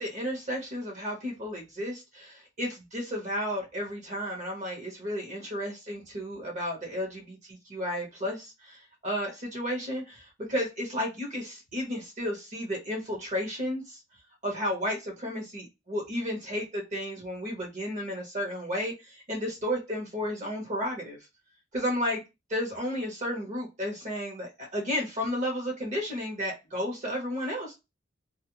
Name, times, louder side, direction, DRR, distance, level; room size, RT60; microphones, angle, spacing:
voice 1, 0.0-14.0 14.4-21.2 21.7-22.2 22.5-27.8, equal, 40° right, 1 dB, 0.9 m, -33 dB
2.4 x 2.0 x 2.9 m, 0.25 s
head